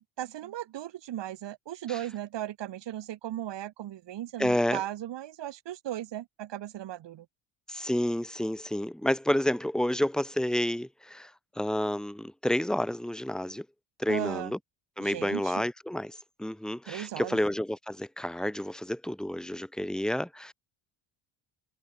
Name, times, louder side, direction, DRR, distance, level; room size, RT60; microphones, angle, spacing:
voice 1, 0.2-7.3 14.1-14.5 15.0-15.6 16.9-17.4, right 12 dB, 60° right, 5.5 m, -36 dB
voice 2, 4.4-4.8 7.7-11.3 11.6-13.7 14.0-14.6 15.0-20.5, left 1 dB, ahead, 3.6 m, -30 dB
cardioid pair, 110°, 48 cm